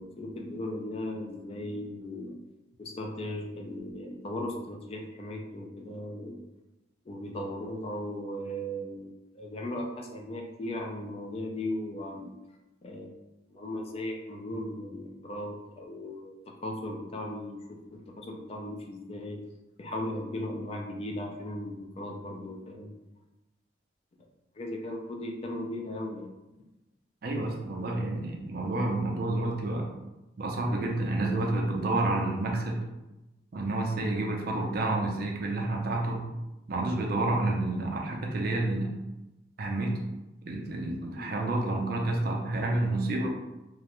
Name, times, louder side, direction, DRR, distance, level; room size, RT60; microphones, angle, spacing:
voice 1, 0.0-2.4 2.8-6.4 7.1-12.3 12.8-13.1 13.5-19.4 19.8-22.9 24.6-26.3 41.1-41.3, left 1 dB, 30° left, 2 dB, 0.3 m, -37 dB
voice 2, 27.2-29.9 30.4-32.8 33.5-36.3 36.7-39.0 39.6-39.9 40.5-43.3, right 2 dB, 50° right, 0 dB, 0.4 m, -29 dB
2.3 x 2.1 x 2.9 m, 1.0 s
head